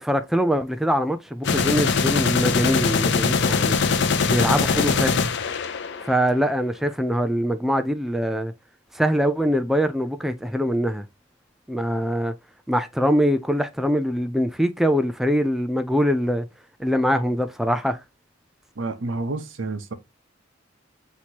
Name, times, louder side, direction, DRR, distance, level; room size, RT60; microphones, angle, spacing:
voice 1, 0.0-3.8 4.3-5.3 6.0-8.5 8.9-11.1 11.7-12.3 12.7-16.5 16.8-18.0, equal, ahead, 0.3 m, -23 dB
sound 1, 1.4-6.3, left 5 dB, 60° left, 0.5 m, -22 dB
voice 2, 18.8-19.9, right 3 dB, 70° right, 0.8 m, -29 dB
6.2 x 2.9 x 2.8 m
head